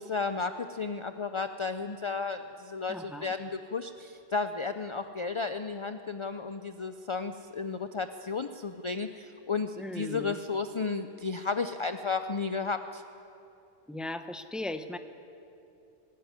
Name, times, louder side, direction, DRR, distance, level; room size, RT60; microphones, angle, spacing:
voice 1, 0.0-13.0, left 4 dB, 35° left, 8 dB, 0.5 m, -33 dB
voice 2, 2.9-3.3 9.8-10.4 13.9-15.0, left 1 dB, ahead, 8 dB, 0.7 m, -37 dB
21.5 x 13.5 x 9.8 m, 2.7 s
omnidirectional pair, 1.1 m